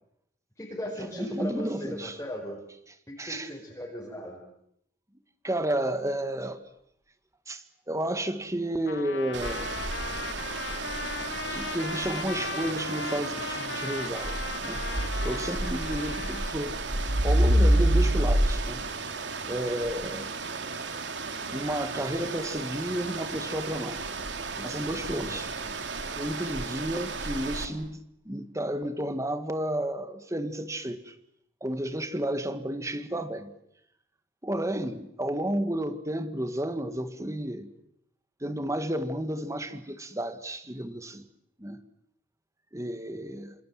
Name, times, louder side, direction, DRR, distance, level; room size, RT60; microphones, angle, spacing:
voice 1, 0.6-2.6 3.1-4.4 25.2-25.7, equal, 15° left, 5.1 m, -38 dB
voice 2, 1.2-2.2 3.2-3.5 5.4-6.6 7.5-9.7 11.5-14.3 14.6-14.8 15.2-16.8 17.2-18.8 19.5-20.3 21.5-24.0 24.6-25.5 26.1-28.0 28.2-31.1 31.6-33.5 34.4-37.7 38.4-41.2 41.6-41.8 42.7-43.5, right 1 dB, 15° right, 1.8 m, -32 dB
Trumpet, 8.9-16.6, left 5 dB, 85° left, 1.2 m, -38 dB
sound 1, 9.3-27.6, right 1 dB, 85° right, 2.8 m, -30 dB
27.5 x 27.0 x 7.6 m
head